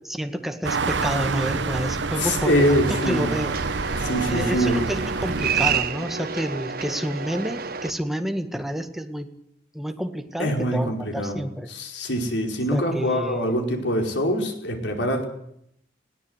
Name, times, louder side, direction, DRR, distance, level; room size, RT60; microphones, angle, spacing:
voice 1, 0.1-3.6 4.3-9.3 9.7-11.7 12.7-13.6, equal, ahead, 6 dB, 1.8 m, -29 dB
sound 1, 0.6-5.8, right 4 dB, 75° right, 1.0 m, -27 dB
voice 2, 2.2-3.3 3.9-4.8 10.4-11.4 11.7-15.2, equal, 75° left, 3 dB, 5.0 m, -24 dB
sound 2, 2.6-7.9, right 6 dB, 55° right, 1.3 m, -29 dB
21.0 x 17.5 x 8.3 m, 0.74 s
head